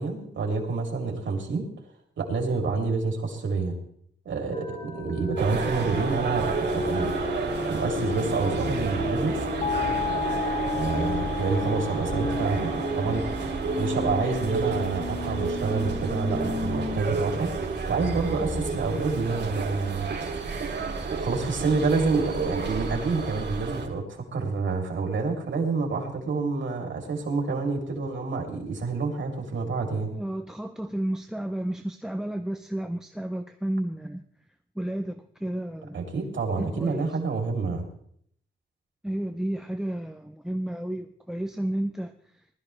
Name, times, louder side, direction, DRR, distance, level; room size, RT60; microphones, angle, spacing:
voice 1, 0.0-1.7 2.2-3.8 4.2-7.3 7.7-9.4 10.8-13.3 13.8-17.5 17.9-20.1 21.2-30.1 35.9-37.9, right 4 dB, 90° right, 1 dB, 3.1 m, -28 dB
sound 1, 4.5-17.0 17.3-17.4 17.8-20.5, left 2 dB, 30° left, 2.6 m, -34 dB
sound 2, 5.4-23.9, right 4 dB, 65° right, 2.8 m, -31 dB
sound 3, 9.6-14.4, left 7 dB, 50° left, 0.5 m, -34 dB
voice 2, 30.1-34.2 34.8-36.0 36.6-37.2 39.0-42.1, right 1 dB, 5° right, 8 dB, 0.6 m, -32 dB
20.0 x 13.0 x 3.3 m, 0.66 s
wide cardioid pair, 155°, 19 cm